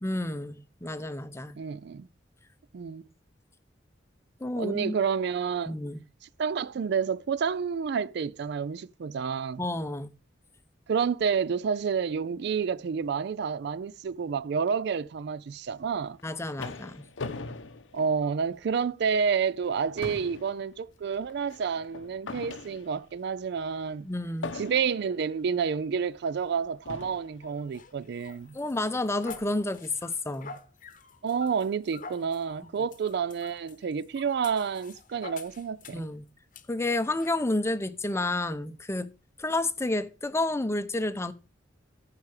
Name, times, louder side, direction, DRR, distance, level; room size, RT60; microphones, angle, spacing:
voice 1, 0.0-1.6 4.4-4.9 5.7-6.0 9.6-10.1 16.2-17.1 24.0-24.5 28.5-30.6 35.9-36.2 36.7-39.1 39.4-41.3, left 2 dB, 15° left, 0.6 m, -30 dB
voice 2, 1.6-2.1 2.7-3.0 4.6-5.7 6.4-9.6 10.9-16.2 17.9-24.1 24.5-28.6 31.2-36.1, right 6 dB, 60° right, 0.4 m, -29 dB
sound 1, 16.0-18.7 19.2-19.3 19.6-23.2 24.4-25.2 26.0-26.1 26.8-27.4, left 3 dB, 90° left, 0.9 m, -40 dB
sound 2, 27.4-36.1 36.5-36.7 37.2-37.4, left 4 dB, 45° left, 0.9 m, -48 dB
14.0 x 4.8 x 4.8 m
head